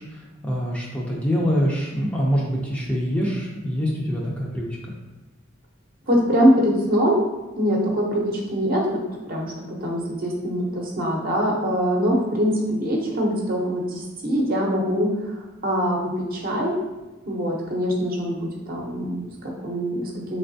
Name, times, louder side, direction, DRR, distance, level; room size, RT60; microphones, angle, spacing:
voice 1, 0.0-4.8, equal, 5° left, -4 dB, 0.5 m, -25 dB
voice 2, 6.1-7.2 7.5-9.0 9.2-15.1 15.6-16.8 17.3-20.4, equal, 45° right, -1 dB, 0.7 m, -23 dB
3.7 x 3.3 x 2.7 m, 1.1 s
head